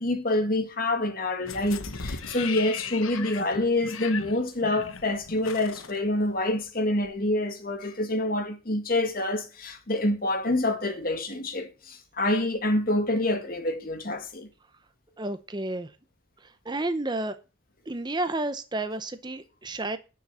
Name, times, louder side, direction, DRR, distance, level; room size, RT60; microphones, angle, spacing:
voice 1, 0.0-14.5, left 1 dB, 45° left, 1.8 m, -27 dB
sound 1, 1.5-6.7 7.0-7.1, left 5 dB, 85° left, 1.1 m, -38 dB
voice 2, 15.2-15.9 16.4-17.4 17.9-20.0, right 2 dB, 20° right, 0.7 m, -31 dB
11.0 x 6.2 x 7.3 m
head